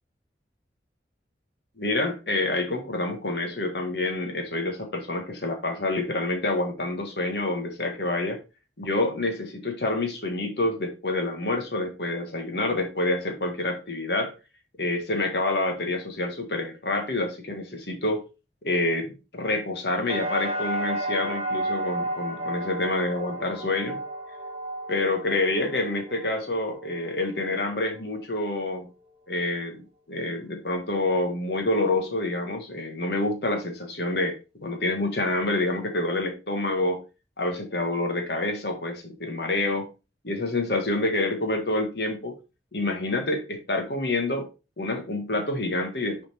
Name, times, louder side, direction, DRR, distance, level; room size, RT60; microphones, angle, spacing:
voice 1, 1.8-8.4 8.8-14.3 14.8-18.2 18.6-24.0 24.9-28.9 29.3-29.8 30.1-37.0 37.4-39.9 40.2-42.3 42.7-44.5 44.8-46.3, left 2 dB, 65° left, 4 dB, 1.6 m, -27 dB
sound 1, 20.1-28.0 28.4-29.0, right 1 dB, 35° right, 1.6 m, -33 dB
6.4 x 4.3 x 4.3 m, 0.29 s
head